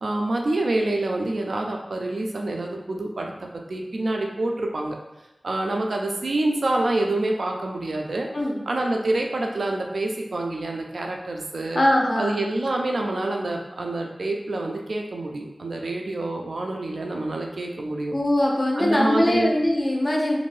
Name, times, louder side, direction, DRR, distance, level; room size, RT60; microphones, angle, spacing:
voice 1, 0.0-5.0 5.4-8.3 8.7-11.8 12.2-18.1 18.8-19.5, right 2 dB, 90° right, 1 dB, 0.4 m, -27 dB
voice 2, 11.7-12.4 18.1-20.4, left 1 dB, 45° left, -1 dB, 0.6 m, -21 dB
2.6 x 2.6 x 3.2 m, 0.99 s
wide cardioid pair, 60°, 0 cm